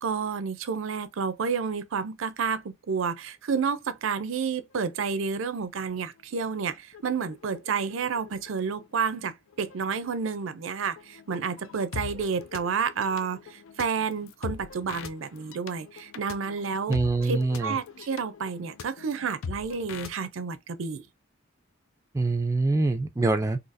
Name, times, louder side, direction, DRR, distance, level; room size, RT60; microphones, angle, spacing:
voice 1, 0.0-17.0 17.2-21.0, right 5 dB, 70° right, 0.5 m, -30 dB
sound 1, 4.7-4.8 5.0-5.5 5.9-20.1, left 6 dB, 80° left, 0.4 m, -43 dB
voice 2, 16.9-17.8 22.1-23.6, right 3 dB, 15° right, 0.3 m, -24 dB
4.0 x 2.7 x 2.5 m
head